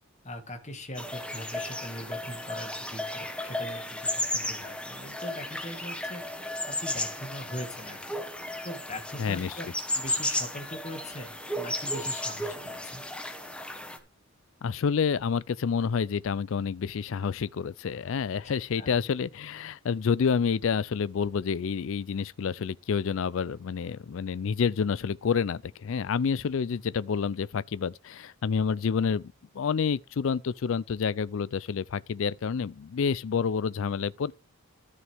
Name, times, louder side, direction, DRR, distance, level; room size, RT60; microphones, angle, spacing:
voice 1, 0.2-6.2 6.7-8.0 8.3-9.7 9.9-13.0 18.4-18.5 18.8-19.0, left 1 dB, 30° left, 1.8 m, -41 dB
sound 1, 0.9-14.0, left 1 dB, 5° left, 1.2 m, -34 dB
voice 2, 9.2-9.5 14.6-34.3, left 6 dB, 60° left, 0.4 m, -28 dB
13.5 x 6.5 x 3.5 m
head